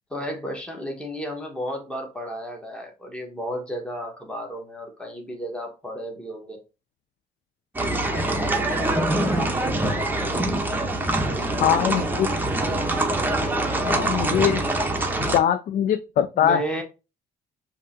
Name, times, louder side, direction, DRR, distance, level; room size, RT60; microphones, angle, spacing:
voice 1, 0.1-6.6 8.1-10.2 11.2-12.3 15.0-15.1 16.3-16.8, equal, 5° left, 1.2 m, -34 dB
sound 1, 7.7-15.4, right 2 dB, 10° right, 0.7 m, -24 dB
voice 2, 11.6-12.3 13.9-14.6 15.3-16.6, left 9 dB, 55° left, 0.4 m, -22 dB
5.3 x 2.8 x 2.6 m
cardioid pair, 110°, 17 cm